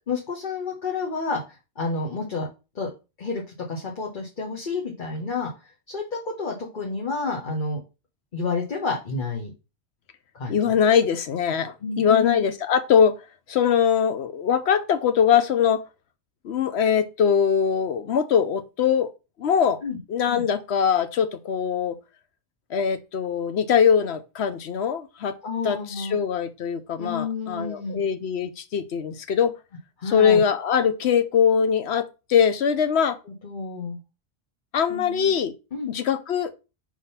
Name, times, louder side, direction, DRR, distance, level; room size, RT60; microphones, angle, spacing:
voice 1, 0.1-2.5 2.7-2.9 3.2-3.4 3.7-7.8 8.3-9.5 10.3-10.6 11.8-12.4 19.8-20.0 20.3-20.4 25.4-26.2 27.0-28.0 30.0-30.4 33.3-34.0 34.9-35.3 35.7-35.9, left 4 dB, 45° left, 1.3 m, -30 dB
voice 2, 10.5-13.2 13.5-15.8 16.4-19.1 19.4-19.8 20.1-22.0 22.7-25.4 25.6-29.5 30.1-33.2 34.7-35.5 35.9-36.6, left 7 dB, 70° left, 0.9 m, -22 dB
4.7 x 3.7 x 5.6 m
omnidirectional pair, 1.2 m